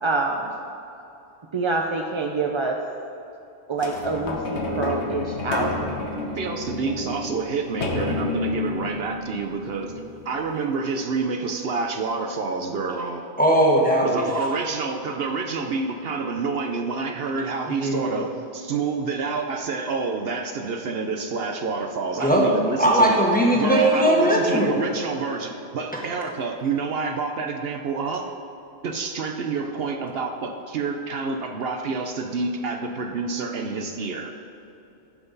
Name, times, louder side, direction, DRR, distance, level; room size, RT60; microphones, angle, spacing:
voice 1, 0.0-0.5 1.5-2.8 3.7-6.0, right 3 dB, 40° right, 1 dB, 0.4 m, -26 dB
sound 1, 3.8-10.5 11.2-11.3, left 2 dB, 75° left, 1.3 m, -30 dB
voice 2, 6.4-9.9 10.2-13.3 14.0-23.2 23.5-28.3 28.8-34.3, right 4 dB, 65° right, 4 dB, 0.9 m, -28 dB
voice 3, 13.4-14.2 17.8-18.2 22.2-22.4 22.8-24.8, right 1 dB, 10° left, -3 dB, 1.3 m, -19 dB
15.0 x 5.8 x 4.0 m, 2.9 s
omnidirectional pair, 1.2 m